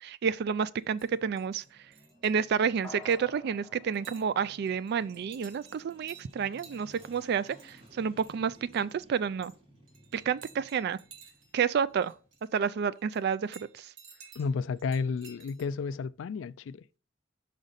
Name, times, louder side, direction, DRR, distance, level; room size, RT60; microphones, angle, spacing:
voice 1, 0.0-1.6 2.2-9.5 10.1-11.0 11.5-12.1 12.5-13.9, right 6 dB, 55° right, 0.3 m, -30 dB
sound 1, 0.8-2.4 2.8-3.2 3.9-4.3 4.7-9.6 9.9-12.6 12.9-15.7, right 5 dB, 85° right, 1.6 m, -55 dB
sound 2, 1.0-12.4, right 1 dB, 30° right, 1.9 m, -58 dB
sound 3, 2.8-5.4 5.8-5.9, left 3 dB, 10° left, 1.2 m, -51 dB
voice 2, 14.4-17.0, left 5 dB, 75° left, 0.3 m, -32 dB
5.1 x 5.0 x 4.0 m
head